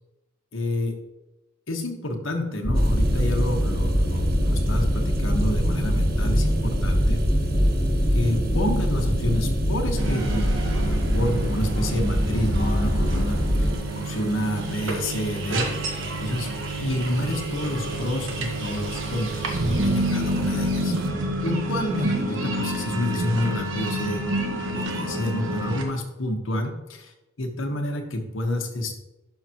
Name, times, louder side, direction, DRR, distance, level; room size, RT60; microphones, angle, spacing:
voice 1, 0.5-0.9 1.7-7.2 8.1-10.5 10.8-13.4 13.9-15.7 16.2-16.5 16.8-21.0 21.4-24.2 24.7-27.1 27.4-28.9, left 1 dB, 85° left, 2 dB, 1.3 m, -29 dB
sound 1, 2.6-13.8, equal, 15° left, 1.4 m, -23 dB
sound 2, 2.7-21.1, right 3 dB, 50° right, 0.8 m, -34 dB
sound 3, 10.0-25.8, right 1 dB, 75° right, 1.3 m, -29 dB
11.5 x 5.8 x 3.0 m, 0.98 s
head